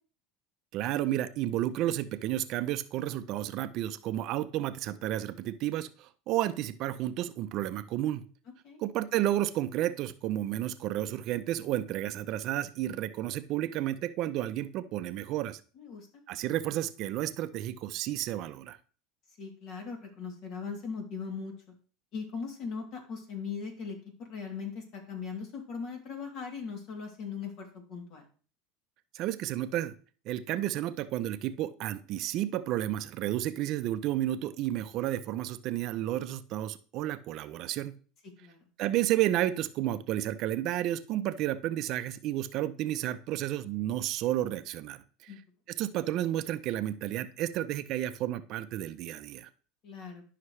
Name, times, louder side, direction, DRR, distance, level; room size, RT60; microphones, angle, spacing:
voice 1, 0.7-8.2 8.8-15.6 16.3-18.8 29.1-29.9 30.3-37.9 38.8-45.3 45.7-49.5, right 13 dB, 55° right, 12 dB, 0.6 m, -31 dB
voice 2, 15.8-16.1 19.4-21.5 22.1-28.3 38.4-38.7 45.3-45.4 49.8-50.2, left 5 dB, 55° left, 2 dB, 2.9 m, -39 dB
11.5 x 5.7 x 3.2 m, 0.40 s
supercardioid pair, 120°, 0 cm